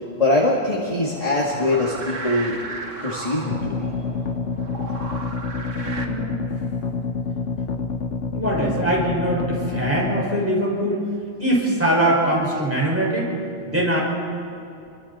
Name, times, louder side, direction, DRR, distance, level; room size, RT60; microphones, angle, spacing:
voice 1, 0.2-2.6 3.0-3.9 5.5-5.6, left 2 dB, 30° left, -3 dB, 2.4 m, -22 dB
sound 1, 1.0-6.0, right 3 dB, 90° right, 2.1 m, -35 dB
sound 2, 3.5-10.3, left 4 dB, 70° left, 1.5 m, -27 dB
voice 2, 5.7-6.4 8.3-11.0 11.4-13.3 13.7-14.0, right 1 dB, 10° right, -4 dB, 6.0 m, -22 dB
28.0 x 23.5 x 4.4 m, 2.6 s
omnidirectional pair, 1.3 m